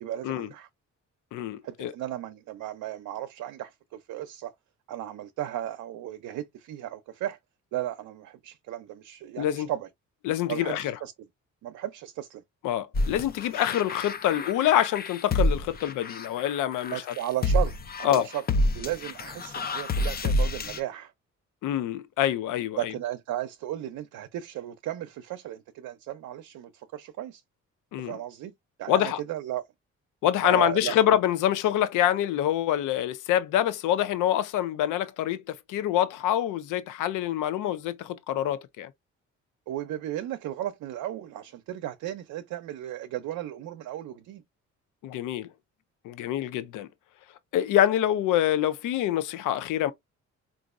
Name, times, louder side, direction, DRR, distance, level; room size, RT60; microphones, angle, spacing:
voice 1, 0.0-0.7 1.6-4.5 4.9-7.4 7.7-9.9 10.5-11.3 11.6-12.4 16.9-18.4 18.7-21.1 22.8-27.4 28.0-28.5 28.8-29.6 30.4-30.9 39.7-44.4, right 13 dB, 75° right, 0.5 m, -35 dB
voice 2, 1.3-1.9 9.4-9.7 10.2-10.9 12.6-16.9 18.0-18.3 21.6-22.9 27.9-28.2 28.9-29.2 30.2-38.9 45.0-45.5 46.0-46.9 47.5-49.9, left 11 dB, 85° left, 0.5 m, -26 dB
sound 1, 12.9-20.8, left 1 dB, 30° left, 0.5 m, -28 dB
3.9 x 2.4 x 2.4 m
cardioid pair, 90°, 30 cm